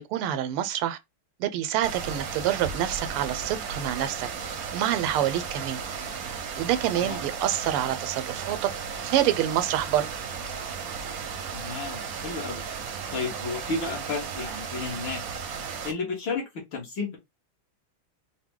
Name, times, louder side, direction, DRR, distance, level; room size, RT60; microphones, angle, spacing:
voice 1, 0.1-1.0 1.4-4.3 4.7-5.8 6.6-8.7 9.0-10.1, right 11 dB, 85° right, 1.5 m, -27 dB
sound 1, 1.8-15.9, right 6 dB, 60° right, 0.9 m, -35 dB
voice 2, 11.5-12.6 13.1-15.2 15.8-17.2, left 4 dB, 65° left, 2.2 m, -32 dB
4.8 x 2.2 x 3.6 m
omnidirectional pair, 2.4 m